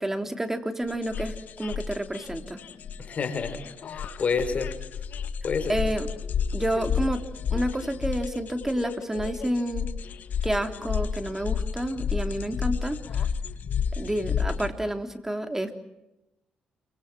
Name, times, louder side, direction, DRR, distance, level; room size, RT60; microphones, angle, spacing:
voice 1, 0.0-2.6 5.7-6.1 6.5-7.2 7.5-9.9 10.4-13.3 14.0-15.8, right 1 dB, 10° right, 7 dB, 3.3 m, -29 dB
sound 1, 0.9-14.7, left 7 dB, 65° left, 1.9 m, -31 dB
voice 2, 3.0-4.8 5.4-5.8, left 5 dB, 50° left, 9 dB, 4.9 m, -29 dB
29.0 x 25.0 x 6.2 m, 0.93 s
cardioid pair, 90°, 3 cm